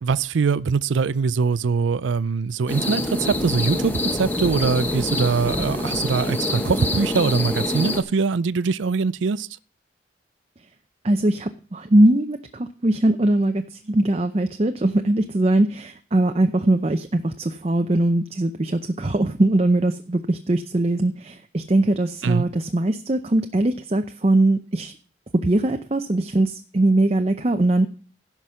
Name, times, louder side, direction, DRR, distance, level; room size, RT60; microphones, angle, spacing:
voice 1, 0.0-9.5 22.2-22.5, right 5 dB, 85° right, 0.4 m, -22 dB
sound 1, 2.7-8.0, left 1 dB, 10° left, 1.2 m, -25 dB
voice 2, 11.0-24.9 25.4-27.9, right 1 dB, 35° right, 0.6 m, -21 dB
16.0 x 6.0 x 5.6 m
head